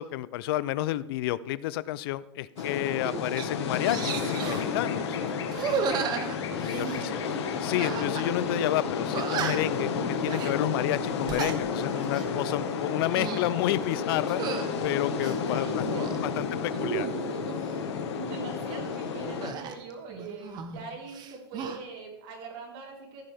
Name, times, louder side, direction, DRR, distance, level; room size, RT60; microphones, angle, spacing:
voice 1, 0.0-5.2 6.5-6.9 7.6-9.9 10.2-15.7 16.2-17.1, left 15 dB, 65° left, 18 dB, 0.4 m, -30 dB
sound 1, 2.6-19.5, left 5 dB, 90° left, 1.6 m, -31 dB
sound 2, 2.6-2.7 3.1-3.5 3.8-4.7 5.5-7.0 7.8-8.3 8.6-8.7 9.1-9.8 10.2-10.5 11.1-11.6 12.0-12.3 12.9-13.5 14.3-14.7 15.2-16.2 16.7-17.6 19.4-20.8 21.1-21.8, right 6 dB, 30° right, 1.0 m, -34 dB
voice 2, 6.7-7.4 11.9-12.3 15.5-16.7 18.1-23.2, right 5 dB, 55° right, -1 dB, 4.1 m, -42 dB
15.0 x 9.0 x 3.5 m, 0.87 s
supercardioid pair, 145°, 14 cm